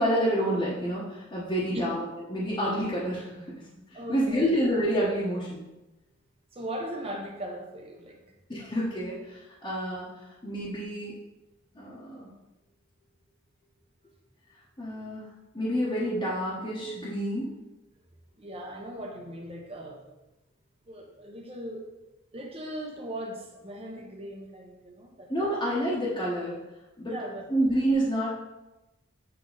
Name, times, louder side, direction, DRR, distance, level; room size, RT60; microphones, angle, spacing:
voice 1, 0.0-2.0 2.3-3.5 3.9-5.6 8.5-10.1 10.4-11.1 11.7-12.3 14.8-15.2 15.5-17.5 25.3-26.6 27.0-27.1 27.5-28.3, equal, 20° left, -8 dB, 1.1 m, -28 dB
voice 2, 3.9-4.5 6.5-8.3 18.4-20.0 20.9-21.8 22.3-25.3 27.1-27.4, right 1 dB, 30° right, 0 dB, 1.1 m, -38 dB
8.0 x 3.7 x 4.0 m, 1.0 s
head